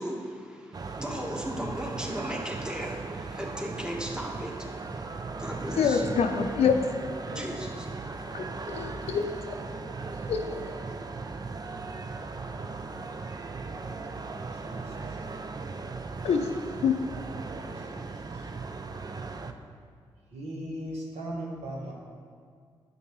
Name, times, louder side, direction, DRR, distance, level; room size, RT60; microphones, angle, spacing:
voice 1, 0.0-4.8 5.4-6.1 7.3-7.9, equal, 5° right, 0 dB, 1.2 m, -36 dB
sound 1, 0.7-19.5, right 4 dB, 35° right, 0.5 m, -38 dB
voice 2, 5.8-6.8 8.3-9.3 10.3-10.4 16.2-16.5 16.8-17.0, left 7 dB, 65° left, 5 dB, 0.5 m, -25 dB
voice 3, 14.5-15.2 17.4-18.5 20.3-21.9, right 1 dB, 70° right, -2 dB, 1.4 m, -39 dB
8.5 x 5.3 x 3.1 m, 2.1 s
supercardioid pair, 40°, 11 cm